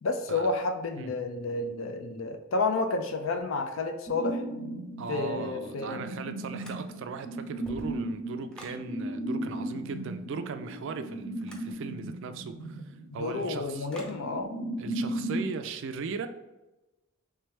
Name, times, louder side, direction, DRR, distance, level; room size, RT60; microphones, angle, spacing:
voice 1, 0.0-4.4 5.1-6.0 13.1-14.5, left 3 dB, 70° left, 7 dB, 0.5 m, -30 dB
sound 1, 4.1-15.5, right 1 dB, 30° left, 1.0 m, -36 dB
voice 2, 5.0-13.9 14.8-16.3, right 5 dB, 65° right, 9 dB, 0.4 m, -38 dB
sound 2, 6.6-7.2 7.5-8.8 11.4-11.7 13.9-14.2, equal, 5° left, 0.5 m, -47 dB
3.4 x 3.3 x 3.2 m, 1.1 s
head